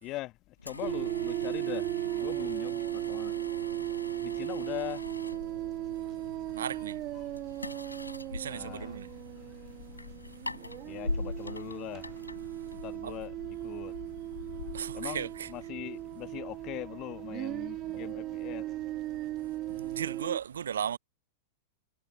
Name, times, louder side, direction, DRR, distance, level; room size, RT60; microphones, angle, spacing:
voice 1, 0.0-3.3 4.2-5.1 6.5-6.7 7.1-7.3 7.9-8.0 8.3-9.1 10.9-12.1 12.7-13.3 13.6-14.0 14.9-18.8, left 18 dB, 40° left, 1.5 m, -41 dB
sound 1, 0.6-13.1, left 2 dB, 90° left, 5.2 m, -42 dB
sound 2, 0.8-20.4, right 16 dB, 35° right, 1.5 m, -37 dB
sound 3, 1.9-20.0, left 12 dB, 60° left, 5.1 m, -53 dB
voice 2, 6.5-7.0 8.3-9.1 13.0-13.2 14.7-15.5 19.7-21.0, right 8 dB, 70° right, 0.4 m, -36 dB
figure-of-eight pair, 95°, 0 cm